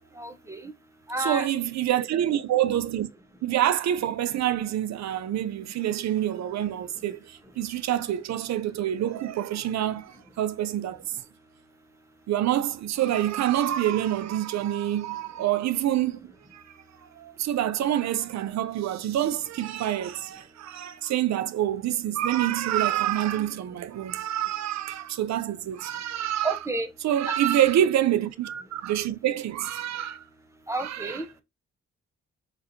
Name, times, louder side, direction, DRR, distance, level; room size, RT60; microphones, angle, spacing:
voice 1, 0.2-0.7 1.1-1.5 26.4-26.9 27.3-27.4 30.7-31.2, right 2 dB, 10° right, 0.7 m, -30 dB
voice 2, 1.2-3.1 3.4-11.0 12.3-16.2 16.5-16.7 17.2-26.6 27.0-30.2 30.8-31.2, right 12 dB, 65° right, 0.4 m, -27 dB
4.0 x 2.4 x 2.7 m
cardioid pair, 70°, 29 cm